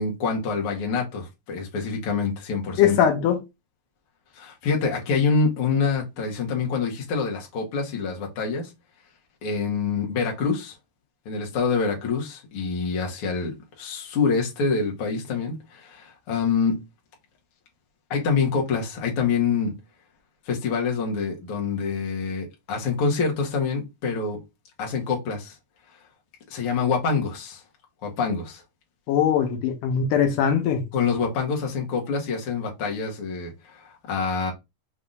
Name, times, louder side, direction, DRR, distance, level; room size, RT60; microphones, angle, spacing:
voice 1, 0.0-3.0 4.4-8.7 9.4-10.8 11.3-16.8 18.1-19.7 20.5-24.4 24.8-25.5 26.5-27.6 28.0-28.6 30.9-34.5, left 5 dB, 55° left, 1.8 m, -26 dB
voice 2, 2.8-3.4 29.1-30.8, left 8 dB, 85° left, 2.4 m, -21 dB
5.5 x 3.4 x 2.6 m
omnidirectional pair, 3.8 m